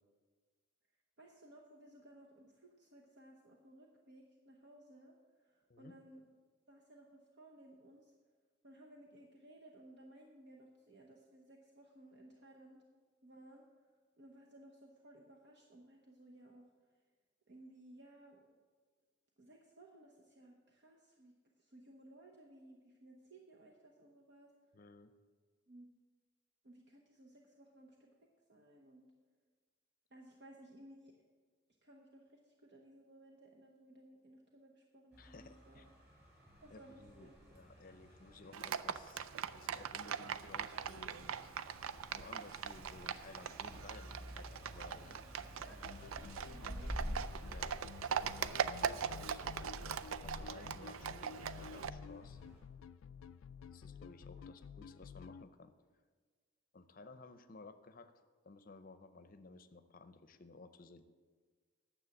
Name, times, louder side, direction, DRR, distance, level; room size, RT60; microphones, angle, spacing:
voice 1, 1.2-6.2 6.7-8.1 8.6-12.8 13.2-13.9 14.2-16.9 17.5-18.5 19.4-24.5 25.7-25.9 26.6-28.1 28.5-29.1 30.1-31.2 31.8-35.9 36.6-37.3 45.6-47.3 54.4-54.6, right 1 dB, 55° right, -1 dB, 1.0 m, -59 dB
voice 2, 24.7-25.1 35.2-35.9 36.7-39.3 39.5-41.5 42.1-45.2 45.5-45.8 47.5-47.7 48.8-49.6 50.2-52.4 53.7-55.7 56.7-58.1 58.4-61.0, left 3 dB, 45° left, 11 dB, 0.6 m, -56 dB
Car passing by, 35.1-52.6, equal, 10° right, 3.6 m, -51 dB
Livestock farm animals working animals, 38.5-51.9, right 7 dB, 90° right, 0.4 m, -41 dB
sound 1, 45.8-55.4, left 6 dB, 85° left, 0.3 m, -52 dB
9.5 x 7.2 x 7.1 m, 1.6 s
head